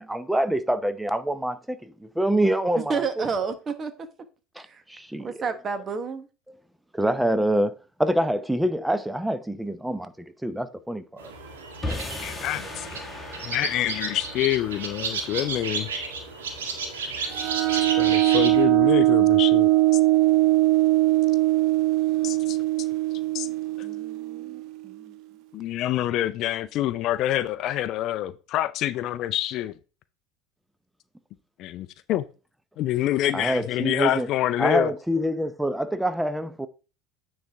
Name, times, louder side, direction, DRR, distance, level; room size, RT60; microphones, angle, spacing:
voice 1, 0.0-3.2 4.6-5.4 6.5-6.6 6.9-10.1 10.4-11.3 11.9-12.0 33.3-34.3 34.6-36.7, right 1 dB, 5° right, 0.8 m, -26 dB
voice 2, 2.7-3.9 4.7-4.8 5.2-6.3 23.8-25.2, right 5 dB, 30° right, 1.3 m, -31 dB
sound 1, 11.2-18.6, right 4 dB, 85° right, 1.8 m, -33 dB
sound 2, 11.8-18.2, left 2 dB, 15° left, 1.9 m, -39 dB
voice 3, 12.2-12.9 13.4-15.9 17.7-19.7 22.2-22.6 23.3-23.5 23.8-23.9 25.5-29.7 31.6-32.3 32.8-34.9, left 13 dB, 55° left, 0.5 m, -27 dB
sound 3, 17.3-24.8, right 18 dB, 60° right, 0.7 m, -21 dB
9.4 x 4.2 x 3.5 m
hypercardioid pair, 85°, 0 cm